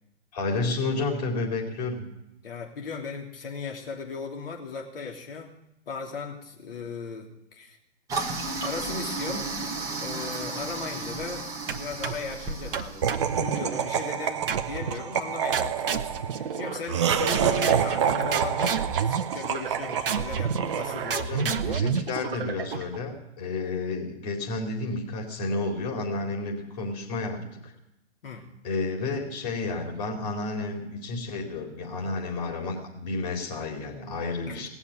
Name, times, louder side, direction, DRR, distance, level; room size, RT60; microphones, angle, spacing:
voice 1, 0.3-2.1 21.2-27.7 28.6-34.7, left 3 dB, 35° left, 0 dB, 4.2 m, -31 dB
voice 2, 2.4-5.6 5.9-7.8 8.6-11.5 11.7-21.4 28.2-28.5 34.5-34.7, left 5 dB, 50° left, 0 dB, 3.3 m, -37 dB
Toilet flush, 8.1-13.3, right 3 dB, 10° right, 1.1 m, -33 dB
sound 1, 11.7-12.3 12.7-13.9 14.5-15.0 15.5-17.0 17.3-23.0, right 6 dB, 50° right, 1.0 m, -30 dB
Laughter, 13.0-21.4, right 8 dB, 25° right, 0.5 m, -28 dB
18.5 x 7.2 x 9.4 m, 0.87 s
figure-of-eight pair, 130°, 36 cm